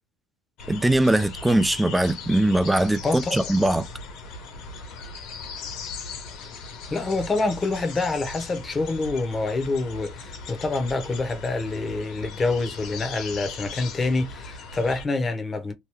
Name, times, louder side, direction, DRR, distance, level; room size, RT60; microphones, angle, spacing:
sound 1, 0.6-15.1, left 4 dB, 70° left, 1.3 m, -38 dB
voice 1, 0.7-3.8, right 1 dB, 10° right, 0.4 m, -21 dB
voice 2, 3.0-3.5 6.9-15.7, left 3 dB, 25° left, 0.9 m, -26 dB
3.0 x 2.2 x 3.4 m
supercardioid pair, 100°, 0 cm